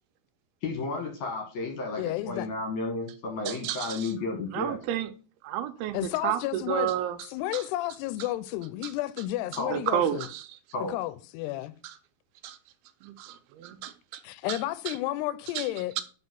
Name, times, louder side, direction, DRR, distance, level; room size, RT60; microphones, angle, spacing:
voice 1, 0.6-4.8 9.6-9.8 10.7-10.9, left 3 dB, 60° left, 2.2 m, -32 dB
voice 2, 2.0-2.5 5.9-6.9 7.3-10.3 10.9-11.7 14.2-15.9, left 15 dB, 85° left, 2.6 m, -32 dB
voice 3, 3.5-4.1 4.5-5.1 5.4-7.2 7.5-7.7 8.8-8.9 9.5-10.6 11.8-12.0 12.4-12.6 13.0-14.2 14.5-14.6 14.9-15.0 15.6-15.7, right 11 dB, 80° right, 2.6 m, -31 dB
5.6 x 5.3 x 6.0 m
omnidirectional pair, 4.8 m